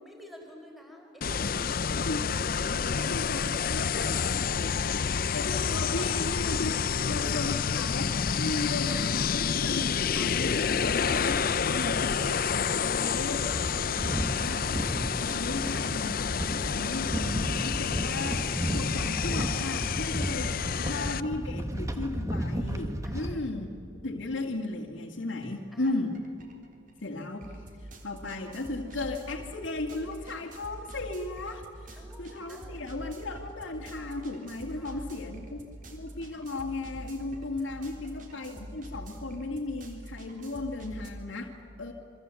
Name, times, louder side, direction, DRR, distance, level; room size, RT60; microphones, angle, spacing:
voice 1, 0.0-2.5 2.9-5.1 8.6-9.0 12.0-14.7 19.8-21.1 23.0-23.4 25.7-26.1 32.0-32.9 34.7-35.1 37.6-38.0, equal, ahead, 1 dB, 4.5 m, -51 dB
sound 1, 1.2-21.2, left 6 dB, 45° left, 0.6 m, -29 dB
voice 2, 2.9-4.1 5.3-13.4 14.0-14.6 15.0-20.5 20.8-23.7 24.0-26.2 27.0-27.5 27.8-35.6 35.9-41.9, left 2 dB, 75° left, 0 dB, 2.1 m, -36 dB
sound 2, 13.5-23.3, equal, 15° right, 1.6 m, -33 dB
sound 3, 25.4-25.6 25.9-41.1, right 1 dB, 45° right, 3.7 m, -45 dB
27.5 x 25.0 x 8.3 m, 2.7 s
head